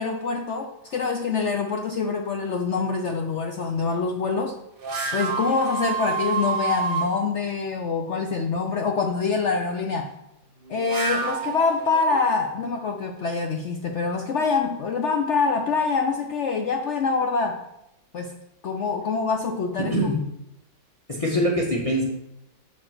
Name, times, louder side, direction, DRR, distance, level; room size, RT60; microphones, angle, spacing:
voice 1, 0.0-4.6 5.1-10.1 10.7-17.6 18.1-18.3 18.6-19.9, left 4 dB, 65° left, 3 dB, 0.7 m, -25 dB
sound 1, 4.8-7.1 10.6-12.3, right 5 dB, 40° right, 0.9 m, -28 dB
voice 2, 19.8-20.2 21.1-22.0, equal, 20° left, -2 dB, 1.5 m, -23 dB
7.1 x 4.3 x 6.1 m, 0.84 s
omnidirectional pair, 1.9 m